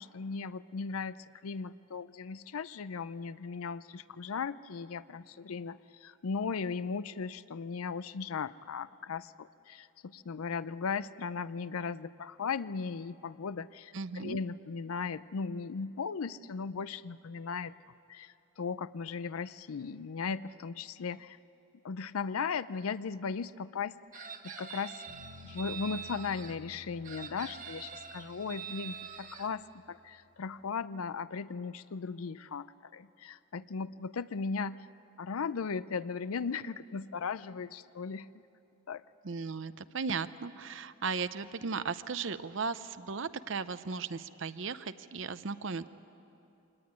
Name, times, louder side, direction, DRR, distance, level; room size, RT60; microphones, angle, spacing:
voice 1, 0.0-17.7 18.1-21.4 21.8-25.0 25.4-34.9 35.2-38.3 38.9-39.0, left 5 dB, 90° left, 16 dB, 0.5 m, -37 dB
voice 2, 13.9-14.4 39.2-45.9, right 5 dB, 60° right, 13 dB, 0.7 m, -36 dB
Chicken rooster, 24.1-26.6 27.0-29.5, right 7 dB, 40° right, 1.2 m, -44 dB
sound 1, 25.1-30.6, left 2 dB, 90° right, 2.4 m, -55 dB
24.5 x 18.5 x 9.7 m, 2.8 s
head